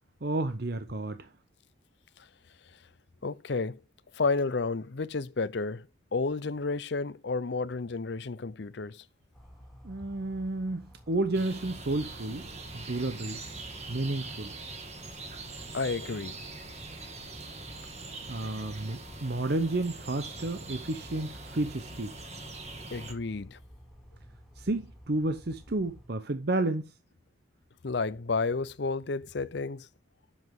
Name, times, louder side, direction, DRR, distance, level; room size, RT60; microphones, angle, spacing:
voice 1, 0.2-1.3 9.8-12.5 12.7-13.4 13.9-14.5 18.3-22.1 24.6-26.9, right 2 dB, 55° right, 0.8 m, -31 dB
voice 2, 3.2-3.8 4.1-5.8 6.1-9.0 15.7-16.3 22.9-23.6 27.8-29.9, left 4 dB, 60° left, 0.6 m, -31 dB
sound 1, 9.3-26.1, equal, ahead, 2.5 m, -52 dB
sound 2, 11.3-23.1, right 3 dB, 35° right, 1.9 m, -43 dB
11.0 x 7.3 x 3.6 m
head